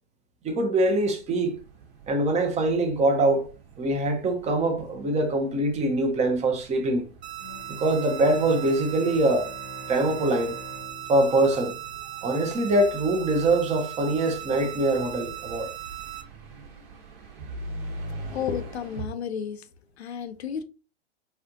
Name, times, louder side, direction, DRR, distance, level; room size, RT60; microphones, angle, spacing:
voice 1, 0.4-1.5 2.1-3.5 3.8-7.0 7.8-9.5 9.9-10.6 11.1-11.8 12.2-15.7, right 2 dB, 20° right, 0.8 m, -23 dB
sound 1, 0.8-19.0, right 2 dB, 50° right, 1.2 m, -44 dB
sound 2, 7.2-16.2, right 14 dB, 80° right, 0.6 m, -38 dB
Bowed string instrument, 7.4-12.7, left 4 dB, 30° left, 0.9 m, -46 dB
voice 2, 18.2-19.7 20.0-20.6, left 7 dB, 80° left, 0.6 m, -32 dB
4.2 x 2.5 x 2.8 m
hypercardioid pair, 100°, 32 cm